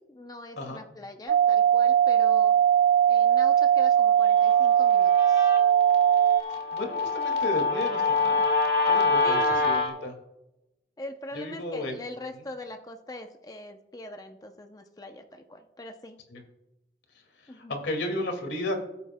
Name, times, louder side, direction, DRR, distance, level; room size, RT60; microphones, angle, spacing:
voice 1, 0.1-2.5 3.1-5.5 9.2-9.6 11.0-16.2 17.5-17.8, left 1 dB, 20° left, 5 dB, 0.6 m, -42 dB
sound 1, 1.3-6.4, right 9 dB, 75° right, 0.3 m, -20 dB
Guitar, 4.4-9.9, left 3 dB, 60° left, 1.6 m, -26 dB
voice 2, 6.7-8.5 8.9-10.1 11.3-11.9 16.3-16.4 17.7-18.7, left 1 dB, 90° left, 3 dB, 2.1 m, -33 dB
17.5 x 8.2 x 2.2 m, 0.92 s
head